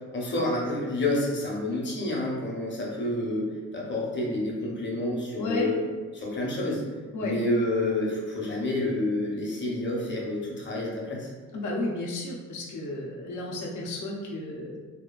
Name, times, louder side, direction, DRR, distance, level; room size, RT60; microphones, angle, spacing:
voice 1, 0.1-5.8 6.1-6.8 7.2-11.3, left 1 dB, 40° left, -3 dB, 0.8 m, -29 dB
voice 2, 5.4-5.7 7.1-7.3 11.5-14.8, left 2 dB, 80° left, -3 dB, 0.7 m, -32 dB
2.8 x 2.3 x 2.3 m, 1.4 s
cardioid pair, 90°, 30 cm